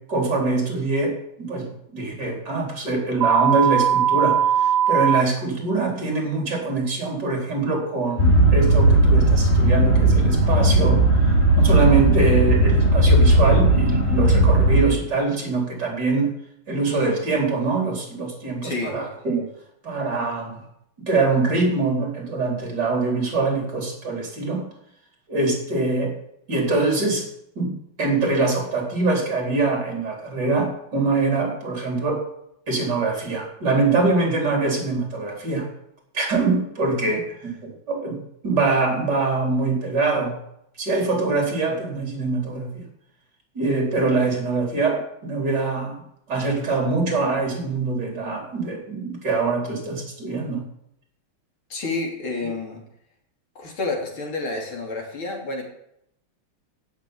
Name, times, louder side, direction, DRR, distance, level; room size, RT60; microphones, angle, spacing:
voice 1, 0.1-11.0 11.6-16.3 16.7-19.5 19.8-20.6 21.0-24.6 25.3-26.1 26.5-27.3 27.6-32.2 32.7-35.7 36.1-38.2 38.4-40.4 40.8-42.8 43.5-46.0 46.3-50.7, right 3 dB, 55° right, 1 dB, 4.9 m, -23 dB
sound 1, 3.2-5.2, right 9 dB, 90° right, 0.7 m, -19 dB
sound 2, 8.2-14.8, right 2 dB, 30° left, 3.2 m, -16 dB
voice 2, 18.6-19.0 37.0-37.1 51.7-52.8 53.6-55.6, left 3 dB, 80° left, 1 dB, 3.8 m, -29 dB
15.0 x 7.0 x 9.9 m, 0.77 s
omnidirectional pair, 2.2 m